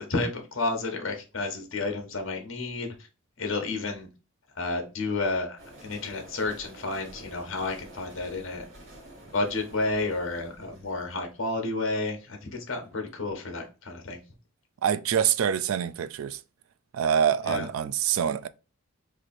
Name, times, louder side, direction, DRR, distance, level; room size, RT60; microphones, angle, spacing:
voice 1, 0.0-2.9 3.4-4.1 4.6-8.6 9.2-14.2 17.5-17.7, left 2 dB, 70° left, 1.1 m, -31 dB
sound 1, 5.6-12.6, right 1 dB, 65° right, 1.7 m, -49 dB
voice 2, 14.8-16.4 16.9-18.5, right 8 dB, 80° right, 0.4 m, -25 dB
3.1 x 2.6 x 4.1 m
head